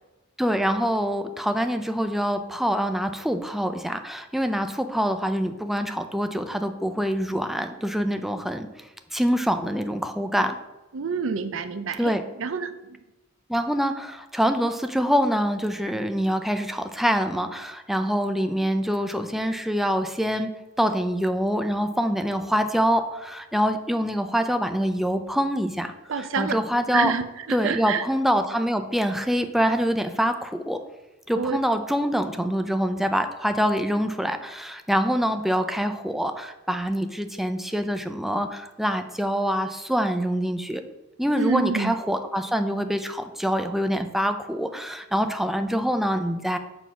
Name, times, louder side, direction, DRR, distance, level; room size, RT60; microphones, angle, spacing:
voice 1, 0.4-8.7 9.1-10.6 12.0-12.2 13.5-20.5 20.8-27.1 27.5-30.8 31.3-40.8 41.2-46.6, equal, ahead, 7 dB, 0.5 m, -25 dB
voice 2, 10.9-12.1 12.4-13.0 26.1-26.6 26.9-28.0 31.3-31.6 41.3-41.9, right 5 dB, 70° right, 11 dB, 0.6 m, -27 dB
7.0 x 3.9 x 5.9 m, 1.1 s
head